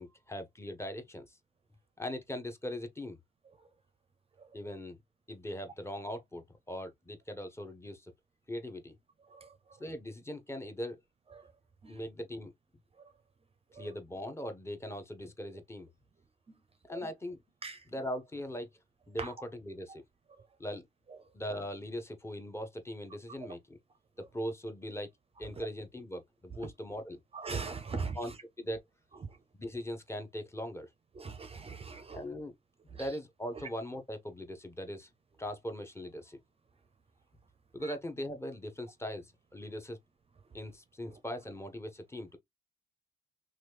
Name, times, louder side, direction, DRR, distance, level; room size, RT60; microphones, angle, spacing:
voice 1, 0.0-1.4 2.0-3.2 4.5-5.0 5.3-8.1 8.5-8.9 9.8-11.0 11.9-12.5 13.7-15.9 16.9-17.4 17.9-18.7 19.1-20.0 20.6-20.8 21.3-23.8 24.3-25.1 25.4-27.2 28.1-28.3 28.6-28.8 29.6-30.9 32.1-32.5 32.8-35.1 35.4-36.4 37.7-40.0 40.5-42.4, equal, 15° left, 0.7 m, -40 dB
voice 2, 27.3-28.2 29.2-29.3 31.2-32.2 32.9-33.1 37.8-37.9 41.1-41.2, right 4 dB, 30° right, 0.5 m, -40 dB
3.0 x 2.4 x 3.3 m
cardioid pair, 90°, 20 cm